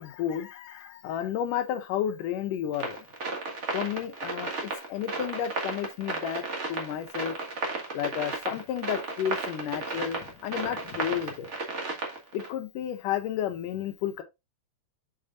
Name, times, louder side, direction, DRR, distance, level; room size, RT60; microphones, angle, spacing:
voice 1, 0.0-3.0 3.7-6.4 6.7-7.4 7.9-11.5 12.3-14.2, left 10 dB, 75° left, 2.2 m, -32 dB
sound 1, 2.7-12.5, right 3 dB, 50° right, 0.8 m, -34 dB
7.0 x 6.8 x 2.5 m
omnidirectional pair, 4.1 m